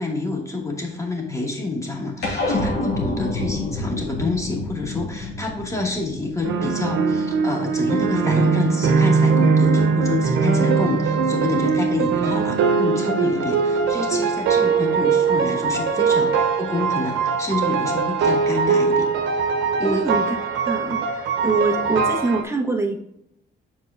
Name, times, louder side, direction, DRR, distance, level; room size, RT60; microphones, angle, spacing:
voice 1, 0.0-19.1 19.8-20.1, left 2 dB, 15° left, -1 dB, 2.3 m, -28 dB
sound 1, 2.2-7.0, left 2 dB, 60° left, 2.5 m, -28 dB
sound 2, 6.4-22.4, right 5 dB, 75° right, 1.0 m, -21 dB
voice 2, 19.8-20.4 20.7-23.0, right 3 dB, 15° right, 2 dB, 1.4 m, -24 dB
7.6 x 4.8 x 2.6 m, 0.78 s
cardioid pair, 90°, 20 cm